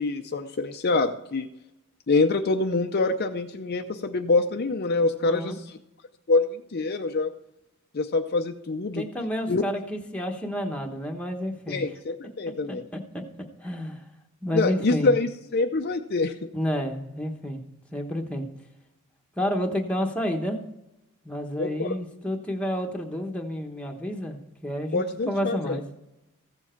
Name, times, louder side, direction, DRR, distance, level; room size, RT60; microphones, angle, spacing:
voice 1, 0.0-1.5 2.1-5.8 6.3-7.3 7.9-9.0 9.5-9.6 11.7-12.8 14.5-16.3 21.6-21.9 24.9-25.8, left 3 dB, 45° left, 6 dB, 0.6 m, -25 dB
voice 2, 5.2-5.6 8.9-11.8 12.7-13.2 13.6-14.0 14.4-15.1 16.5-17.6 17.9-18.4 19.4-20.6 21.2-25.8, equal, 5° left, 2 dB, 1.1 m, -30 dB
15.0 x 7.3 x 4.5 m, 0.91 s
head